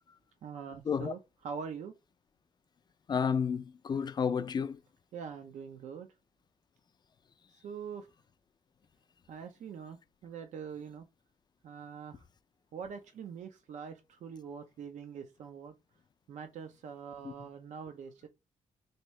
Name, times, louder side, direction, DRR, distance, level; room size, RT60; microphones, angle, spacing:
voice 1, 0.4-1.9 5.1-6.1 7.5-8.1 9.3-11.1 11.6-12.2 12.7-15.7 16.3-18.3, right 6 dB, 75° right, 0.6 m, -44 dB
voice 2, 3.1-4.8 17.2-17.3, left 6 dB, 35° left, 0.3 m, -31 dB
3.5 x 2.8 x 3.1 m
cardioid pair, 105°, 13 cm